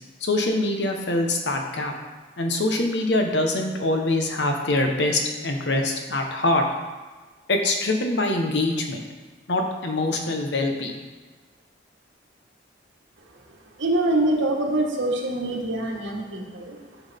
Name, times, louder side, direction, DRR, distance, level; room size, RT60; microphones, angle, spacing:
voice 1, 0.2-1.9 2.4-6.6 7.5-9.0 9.5-11.0, left 2 dB, 70° left, 3 dB, 1.1 m, -24 dB
voice 2, 13.8-17.0, right 1 dB, 85° right, 0 dB, 1.6 m, -25 dB
11.0 x 6.3 x 3.6 m, 1.3 s
head